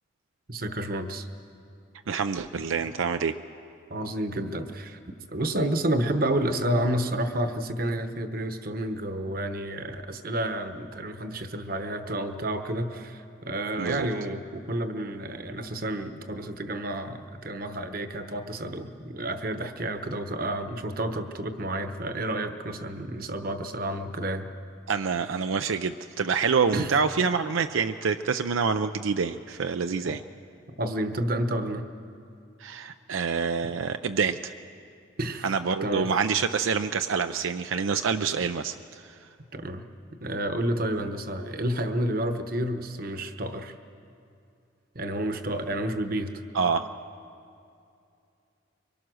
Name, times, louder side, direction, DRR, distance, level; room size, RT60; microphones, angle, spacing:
voice 1, 0.5-1.3 3.9-5.0 5.3-24.5 26.7-26.9 30.0-30.1 30.8-31.8 35.2-35.5 35.8-36.1 39.5-39.8 40.2-43.7 44.9-46.3, right 1 dB, 45° right, 8 dB, 1.1 m, -30 dB
voice 2, 2.1-3.4 13.8-14.1 24.9-30.2 32.6-34.5 35.4-39.2 46.5-46.9, right 5 dB, 80° right, 8 dB, 0.5 m, -27 dB
24.0 x 22.0 x 6.3 m, 2.5 s
head